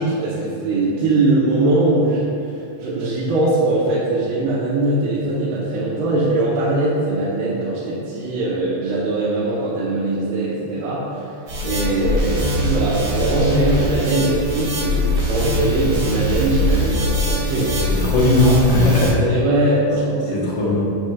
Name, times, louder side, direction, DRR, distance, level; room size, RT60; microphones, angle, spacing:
voice 1, 0.0-11.4 11.6-17.9 19.3-20.7, right 2 dB, 85° right, -9 dB, 3.0 m, -21 dB
sound 1, 11.5-19.1, equal, 45° right, 2.1 m, -22 dB
voice 2, 17.8-19.4 20.3-20.8, left 2 dB, 65° left, -5 dB, 1.6 m, -17 dB
9.0 x 7.8 x 2.4 m, 2.6 s
omnidirectional pair, 4.5 m